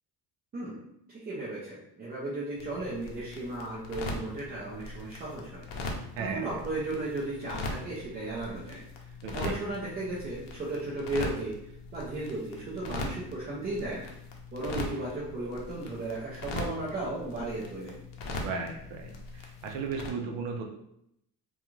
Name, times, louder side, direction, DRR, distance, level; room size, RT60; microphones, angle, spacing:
voice 1, 1.1-5.7 6.2-14.1 14.5-17.9, right 2 dB, 25° right, -7 dB, 0.4 m, -35 dB
sound 1, 2.6-20.1, left 2 dB, 80° left, 0.7 m, -40 dB
voice 2, 6.2-6.5 9.2-9.5 18.4-20.6, right 4 dB, 90° right, 3 dB, 0.6 m, -35 dB
2.4 x 2.3 x 3.0 m, 0.76 s
cardioid pair, 170°, 43 cm